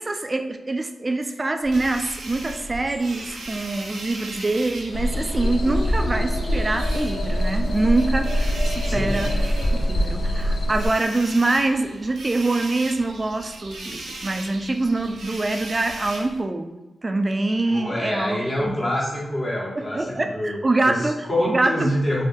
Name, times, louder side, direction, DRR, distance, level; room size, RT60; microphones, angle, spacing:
voice 1, 0.0-9.3 9.7-18.8 19.8-21.9, right 2 dB, 35° right, 7 dB, 0.3 m, -25 dB
sound 1, 1.6-16.4, right 2 dB, 85° right, 0.5 m, -38 dB
sound 2, 4.9-10.9, equal, 70° left, 0.3 m, -23 dB
voice 2, 8.8-9.3 9.7-10.0 17.7-20.6 20.8-22.2, left 1 dB, 50° left, -6 dB, 1.1 m, -26 dB
3.7 x 2.1 x 2.6 m, 1.1 s
cardioid pair, 45°, 0 cm